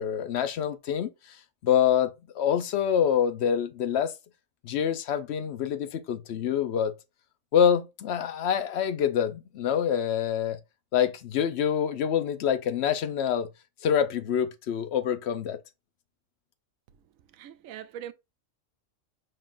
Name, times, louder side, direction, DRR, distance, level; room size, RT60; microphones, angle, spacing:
voice 1, 0.0-1.4 1.6-4.1 4.6-6.9 7.5-10.6 10.9-13.5 13.8-15.6, left 8 dB, 60° left, 0.8 m, -26 dB
voice 2, 17.3-18.1, right 10 dB, 85° right, 1.0 m, -41 dB
5.4 x 3.6 x 2.5 m
omnidirectional pair, 1.4 m